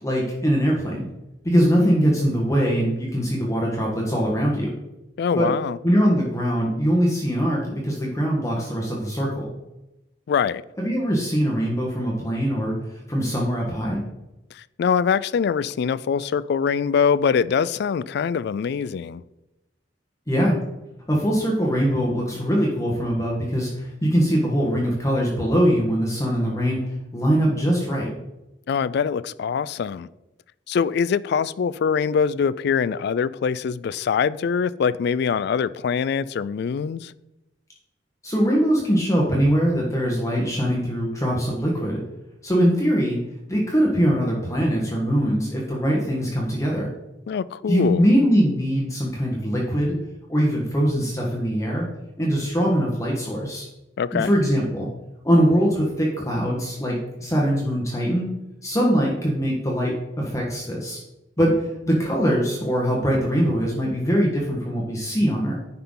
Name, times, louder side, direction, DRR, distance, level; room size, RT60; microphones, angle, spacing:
voice 1, 0.0-1.1 1.4-4.7 5.3-5.5 5.8-9.5 10.8-14.0 20.3-20.6 21.1-28.1 38.2-42.0 42.4-43.2 43.5-46.9 47.7-49.9 50.3-51.9 52.2-53.7 54.1-54.9 55.2-58.3 58.6-61.0 61.4-65.6, equal, 15° left, 1.4 m, -22 dB
voice 2, 5.2-5.8 10.3-10.6 14.5-19.2 28.7-30.1 30.7-37.1 47.3-48.0 54.0-54.3, left 6 dB, 60° left, 0.3 m, -23 dB
10.0 x 5.7 x 3.8 m
head